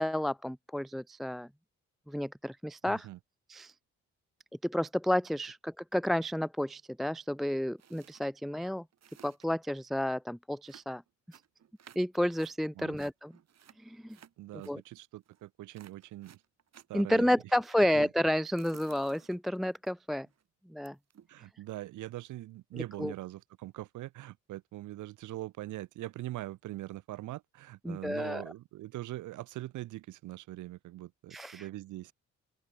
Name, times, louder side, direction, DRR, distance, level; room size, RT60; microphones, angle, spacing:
voice 1, 0.0-1.5 2.1-3.1 3.5-3.7 4.6-8.8 9.2-11.0 11.3-11.4 12.0-13.3 13.8-14.2 14.7-14.8 16.9-20.3 20.7-21.0 22.7-23.1 27.9-28.4 31.3-31.6, left 1 dB, ahead, 0.4 m, -31 dB
voice 2, 2.8-3.2 12.8-13.0 14.4-16.4 16.9-17.3 17.9-18.1 21.3-32.1, right 16 dB, 80° right, 1.0 m, -42 dB
sound 1, 7.8-8.2 8.6-8.7 8.8-9.6 10.6-12.5 12.9-14.7 15.2-15.5 15.7-17.0 18.4-19.9 20.3-20.4 20.8-21.4, right 9 dB, 60° right, 7.9 m, -57 dB
open air
cardioid pair, 90°, 30 cm